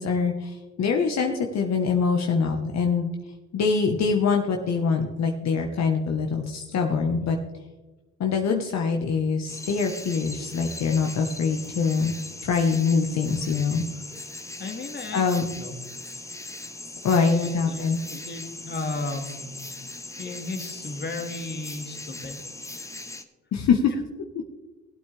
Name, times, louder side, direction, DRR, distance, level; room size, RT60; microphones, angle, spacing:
voice 1, 0.0-3.1 3.5-7.4 8.2-12.1 12.4-13.8 15.1-15.4 17.0-18.0 23.5-23.9, left 5 dB, 60° left, 2 dB, 1.2 m, -24 dB
sound 1, 9.5-23.2, left 2 dB, 10° left, 0.9 m, -39 dB
voice 2, 14.6-15.2 15.6-15.7 17.2-17.8 18.1-19.5 20.2-22.5, left 2 dB, 35° left, 4 dB, 1.9 m, -34 dB
18.0 x 8.5 x 3.3 m, 1.2 s
cardioid pair, 90°, 30 cm